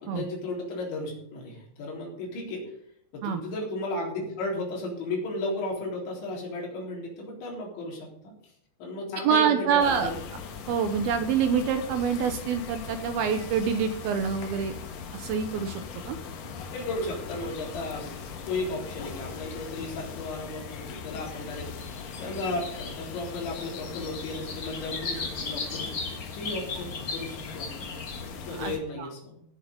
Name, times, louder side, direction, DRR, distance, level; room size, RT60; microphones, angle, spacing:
voice 1, 0.0-2.6 3.1-8.3 8.8-10.2 16.6-18.1 18.5-21.7 22.2-29.4, left 2 dB, 85° left, -2 dB, 6.0 m, -34 dB
voice 2, 9.2-10.1 10.7-14.7 15.1-16.2 28.6-28.7 29.0-29.1, right 7 dB, 75° right, 8 dB, 2.4 m, -26 dB
sound 1, 9.8-28.8, left 6 dB, 65° left, 2.6 m, -40 dB
sound 2, 21.2-21.3 21.8-23.3 23.6-23.7 24.0-28.2, left 3 dB, 40° left, 1.7 m, -37 dB
17.0 x 7.4 x 5.3 m, 0.72 s
omnidirectional pair, 5.1 m